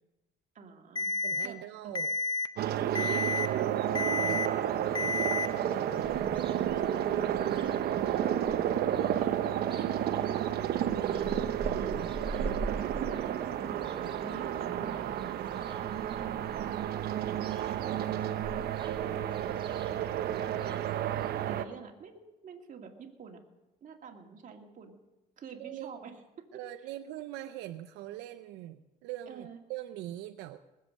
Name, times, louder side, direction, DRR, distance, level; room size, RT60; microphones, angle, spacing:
voice 1, 0.5-1.1 1.4-1.6 1.8-1.9 3.4-3.7 5.4-6.2 6.7-8.6 9.0-11.3 11.8-12.1 12.6-15.2 15.6-16.5 16.9-17.0 17.7-21.1 21.5-23.4 23.8-24.9 25.4-26.2 29.3-29.6, right 5 dB, 50° right, 3 dB, 2.3 m, -47 dB
Alarm, 1.0-1.5 2.0-2.5 3.0-3.5 4.0-4.5 5.0-5.5, left 3 dB, 25° left, 0.7 m, -30 dB
voice 2, 1.2-2.1 2.7-4.6 11.6-12.1 25.6-25.9 26.5-30.6, right 14 dB, 90° right, 8 dB, 0.6 m, -41 dB
sound 1, 2.6-21.6, right 10 dB, 65° right, 0.9 m, -31 dB
sound 2, 6.0-21.5, right 2 dB, 30° right, 1.6 m, -45 dB
20.5 x 7.7 x 6.4 m, 1.0 s
cardioid pair, 95°, 17 cm